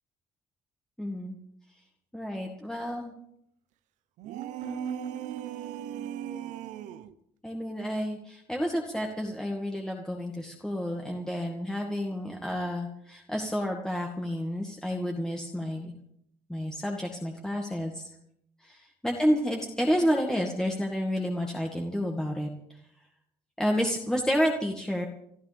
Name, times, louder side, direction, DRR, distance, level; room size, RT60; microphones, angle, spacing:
voice 1, 1.0-1.4 2.1-3.1 4.6-5.2 7.4-15.9 16.5-18.1 18.6-22.8 23.6-25.1, equal, 5° left, 0 dB, 2.0 m, -30 dB
sound 1, 4.2-7.1, right 12 dB, 80° right, 0.8 m, -38 dB
28.5 x 13.0 x 3.5 m, 0.75 s
cardioid pair, 90°, 12 cm